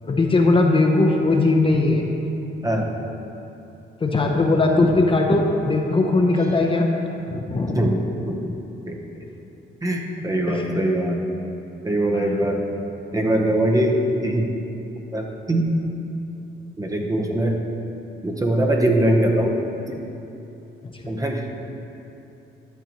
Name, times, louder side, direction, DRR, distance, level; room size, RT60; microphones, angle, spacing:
voice 1, 0.0-2.0 4.0-6.9 7.3-7.9 10.5-10.6, left 2 dB, 25° left, 1 dB, 0.7 m, -19 dB
voice 2, 7.7-8.4 8.9-9.2 9.8-11.2 11.8-12.7 13.1-14.5 15.1-15.7 16.8-17.6 18.2-19.6 21.1-21.5, right 1 dB, 15° right, 1 dB, 0.9 m, -22 dB
11.5 x 6.7 x 3.0 m, 2.9 s
cardioid pair, 90°, 20 cm